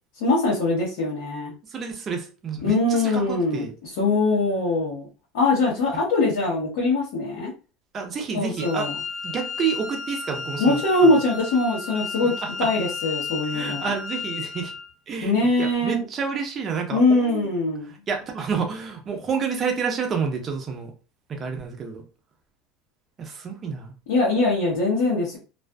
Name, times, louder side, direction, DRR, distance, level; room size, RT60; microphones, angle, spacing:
voice 1, 0.2-1.5 2.6-5.1 5.3-7.5 8.3-8.9 10.6-12.3 12.6-13.9 15.2-16.0 16.9-17.9 24.1-25.4, left 2 dB, 75° left, -6 dB, 1.0 m, -22 dB
voice 2, 1.7-3.7 7.9-8.9 9.2-11.2 12.4-12.7 13.5-14.7 15.1-17.5 17.8-20.9 21.3-22.0 23.2-23.9, right 6 dB, 25° right, 3 dB, 0.6 m, -29 dB
Wind instrument woodwind instrument, 8.6-14.9, left 5 dB, 50° left, 0.8 m, -33 dB
2.4 x 2.4 x 2.2 m, 0.34 s
supercardioid pair, 145°, 0 cm